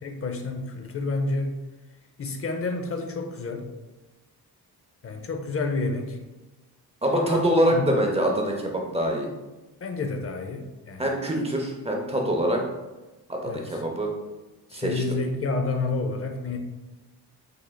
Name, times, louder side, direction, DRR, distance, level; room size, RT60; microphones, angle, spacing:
voice 1, 0.0-1.6 2.2-3.7 5.0-6.2 7.1-8.0 9.8-11.2 13.4-13.8 14.7-16.6, left 3 dB, 35° left, 4 dB, 0.5 m, -29 dB
voice 2, 7.0-9.3 11.0-12.6 13.3-14.1 14.7-15.0, right 1 dB, 15° right, 1 dB, 0.7 m, -24 dB
4.8 x 3.2 x 2.2 m, 1.1 s
cardioid pair, 100°, 39 cm